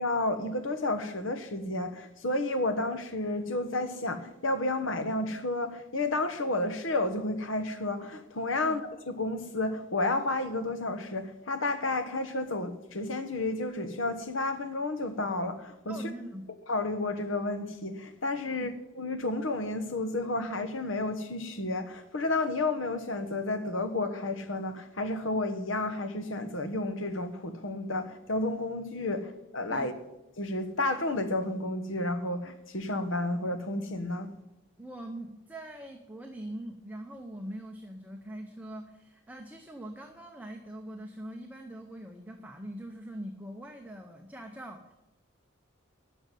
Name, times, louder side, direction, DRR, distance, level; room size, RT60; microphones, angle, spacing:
voice 1, 0.0-8.8 9.1-15.9 16.7-18.7 19.0-29.9 30.4-34.3, left 2 dB, 80° left, 1.3 m, -31 dB
voice 2, 15.9-16.5 18.5-18.7 29.7-29.9 34.8-44.9, right 1 dB, 10° right, 0.8 m, -42 dB
12.0 x 6.3 x 9.3 m
head